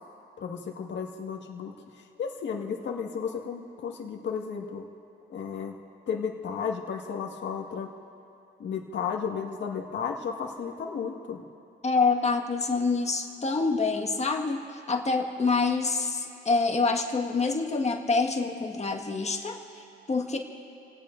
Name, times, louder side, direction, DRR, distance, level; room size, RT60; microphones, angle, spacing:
voice 1, 0.4-1.7 2.2-4.9 5.3-5.8 6.1-7.9 8.6-11.4, left 6 dB, 65° left, 1 dB, 1.8 m, -33 dB
voice 2, 11.8-20.4, left 4 dB, 35° left, 2 dB, 1.7 m, -26 dB
29.0 x 18.0 x 2.6 m, 2.8 s
cardioid pair, 90°, 20 cm